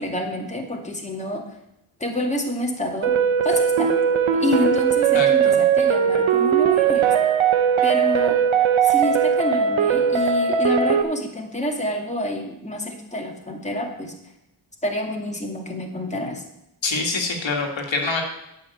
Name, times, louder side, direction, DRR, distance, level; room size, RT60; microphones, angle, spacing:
voice 1, 0.0-1.4 2.0-3.1 3.4-4.0 4.3-7.1 7.8-8.5 8.8-14.1 14.8-16.4, left 1 dB, 15° left, 0 dB, 2.3 m, -27 dB
sound 1, 3.0-11.0, right 7 dB, 70° right, 1.1 m, -19 dB
voice 2, 5.1-5.6 16.8-18.2, left 3 dB, 65° left, 1 dB, 2.2 m, -25 dB
9.1 x 6.1 x 8.0 m, 0.86 s
cardioid pair, 55°, 49 cm